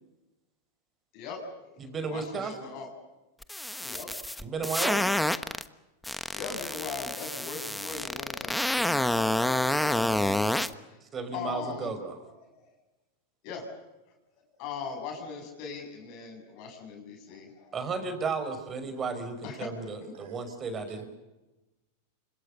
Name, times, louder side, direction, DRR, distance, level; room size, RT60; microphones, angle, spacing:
voice 1, 1.1-2.9 3.8-4.4 6.3-12.0 12.4-12.5 13.4-13.7 14.5-17.8 19.4-19.7 20.0-20.1, left 5 dB, 55° left, 1 dB, 7.7 m, -40 dB
voice 2, 1.8-2.5 4.4-5.2 11.1-12.2 17.7-21.1, right 4 dB, 25° right, 8 dB, 5.7 m, -34 dB
sound 1, 3.4-5.6 6.0-10.7, left 1 dB, 5° left, 1.2 m, -28 dB
voice 3, 20.1-21.0, right 6 dB, 75° right, 8 dB, 5.3 m, -49 dB
28.0 x 26.0 x 6.9 m, 1.0 s
hypercardioid pair, 120°, 0 cm